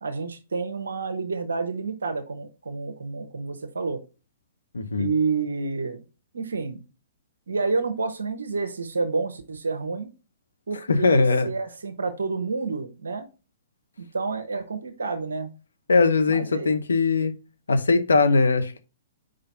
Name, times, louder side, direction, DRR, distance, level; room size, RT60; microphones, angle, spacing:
voice 1, 0.0-4.0 5.0-6.0 6.3-6.8 7.5-10.1 10.7-13.3 14.0-15.5 16.3-16.7, right 4 dB, 80° right, 1.0 m, -29 dB
voice 2, 4.7-5.1 10.9-11.5 15.9-17.3 17.7-18.8, left 3 dB, 80° left, 1.0 m, -20 dB
5.0 x 3.9 x 5.7 m
hypercardioid pair, 120°, 0 cm